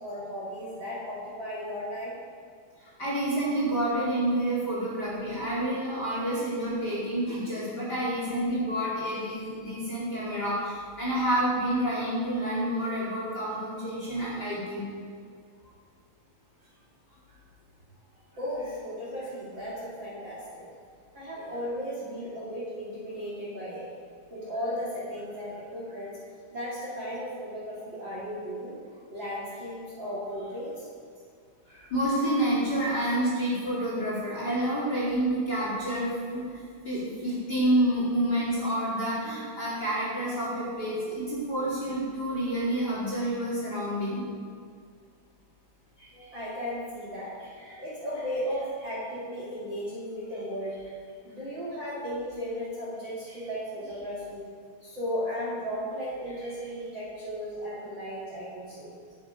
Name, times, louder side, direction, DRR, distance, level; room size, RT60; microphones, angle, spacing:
voice 1, 0.0-2.2 18.4-20.7 21.1-23.9 24.3-26.2 26.5-28.8 29.1-30.9 46.1-47.3 47.8-50.8 51.2-54.5 54.8-58.9, equal, 35° right, -7 dB, 2.3 m, -35 dB
voice 2, 2.8-14.9 31.7-44.2 46.0-46.3 47.7-47.8 53.3-53.4, right 1 dB, 30° left, -7 dB, 2.5 m, -29 dB
12.0 x 9.0 x 4.9 m, 2.2 s
omnidirectional pair, 4.6 m